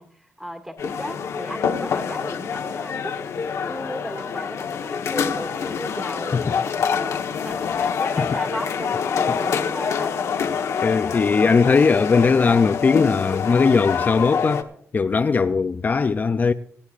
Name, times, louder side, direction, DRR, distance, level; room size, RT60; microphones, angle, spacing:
voice 1, 0.0-3.2 3.6-10.2, equal, 5° right, 2.1 m, -35 dB
sound 1, 0.8-14.6, left 6 dB, 75° left, 1.2 m, -26 dB
voice 2, 10.8-14.7 14.9-16.5, left 5 dB, 35° left, 0.4 m, -19 dB
27.5 x 10.0 x 2.5 m
cardioid pair, 90°, 5 cm